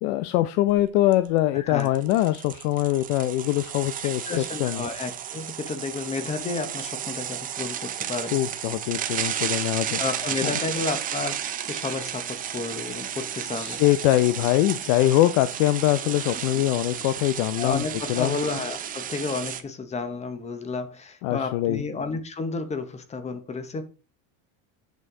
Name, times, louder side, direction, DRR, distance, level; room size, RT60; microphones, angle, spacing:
voice 1, 0.0-4.8 8.3-10.0 10.4-10.6 13.6-17.8 18.1-18.4 21.2-21.8, left 15 dB, 75° left, 0.7 m, -23 dB
sound 1, 0.7-0.8 1.1-1.3 1.8-19.6, right 10 dB, 20° right, 0.5 m, -33 dB
voice 2, 1.5-1.9 4.3-8.4 10.0-13.8 17.6-23.8, left 4 dB, 15° left, 0.8 m, -31 dB
8.3 x 6.3 x 3.7 m
cardioid pair, 165°, 41 cm